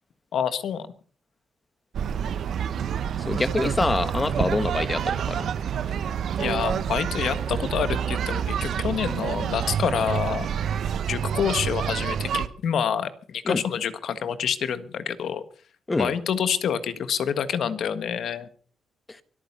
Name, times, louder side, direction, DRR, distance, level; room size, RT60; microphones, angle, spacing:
voice 1, 0.3-0.9 6.4-10.5 11.1-15.4 16.0-18.5, left 8 dB, 65° left, 12 dB, 1.5 m, -27 dB
sound 1, 1.9-12.5, right 8 dB, 65° right, 1.0 m, -28 dB
voice 2, 3.2-5.5 13.4-13.6 15.9-16.1, left 2 dB, 20° left, 13 dB, 1.2 m, -25 dB
24.0 x 9.1 x 5.5 m, 0.43 s
cardioid pair, 130°, 0 cm